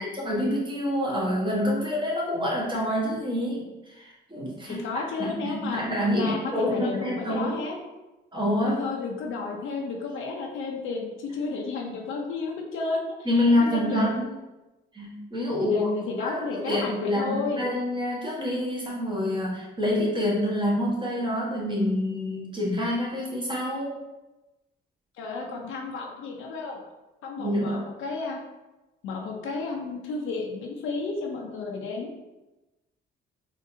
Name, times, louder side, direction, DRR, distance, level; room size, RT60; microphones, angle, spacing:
voice 1, 0.0-4.8 5.2-7.5 8.3-8.9 13.2-14.3 14.9-15.9 16.2-24.0 27.4-27.8, left 1 dB, 25° right, -5 dB, 1.3 m, -27 dB
voice 2, 4.7-5.8 6.1-7.8 8.6-13.1 13.6-14.2 15.6-17.6 25.2-26.8 27.2-28.4 29.0-32.2, left 4 dB, 80° left, 1 dB, 0.6 m, -32 dB
3.8 x 2.6 x 2.6 m, 1.1 s
cardioid pair, 90°, 20 cm